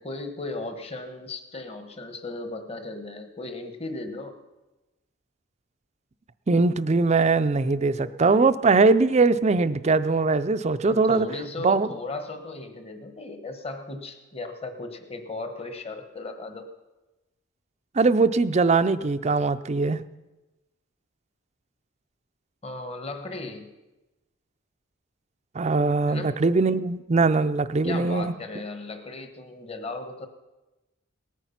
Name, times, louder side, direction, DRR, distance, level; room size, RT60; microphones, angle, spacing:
voice 1, 0.0-4.3 10.9-16.7 22.6-23.7 26.0-26.4 27.8-30.3, left 2 dB, 30° left, 7 dB, 1.2 m, -36 dB
voice 2, 6.5-11.3 11.6-11.9 17.9-20.0 25.5-28.3, right 3 dB, 30° right, 12 dB, 0.4 m, -21 dB
18.5 x 9.2 x 5.8 m, 1.1 s
head